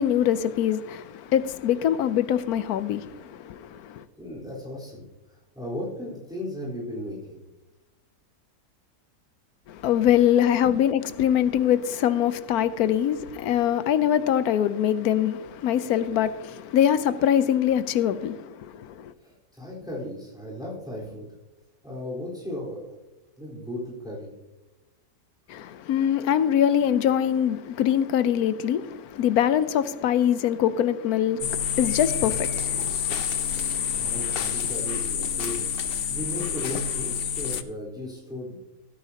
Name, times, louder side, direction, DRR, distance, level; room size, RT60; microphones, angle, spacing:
voice 1, 0.0-4.0 9.7-19.1 25.5-34.1, left 10 dB, 80° left, 1.2 m, -24 dB
voice 2, 4.2-5.0 5.5-7.4 10.6-10.7 19.2-21.4 21.8-22.9 23.4-24.3 33.9-38.6, left 1 dB, ahead, 4.0 m, -36 dB
sound 1, 31.4-37.6, left 8 dB, 55° left, 0.7 m, -28 dB
17.0 x 9.9 x 2.9 m
omnidirectional pair, 1.6 m